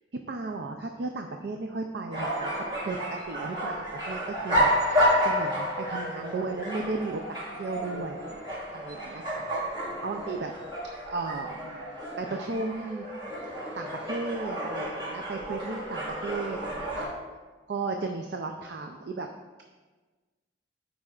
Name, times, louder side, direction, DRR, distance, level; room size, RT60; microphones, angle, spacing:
voice 1, 0.1-8.2 8.7-9.6 10.0-10.5 11.1-13.1 13.7-17.1 17.7-19.3, right 3 dB, 65° right, 4 dB, 0.4 m, -35 dB
sound 1, 2.1-17.1, equal, 25° right, 1.9 m, -31 dB
12.0 x 4.8 x 2.4 m, 1.3 s
head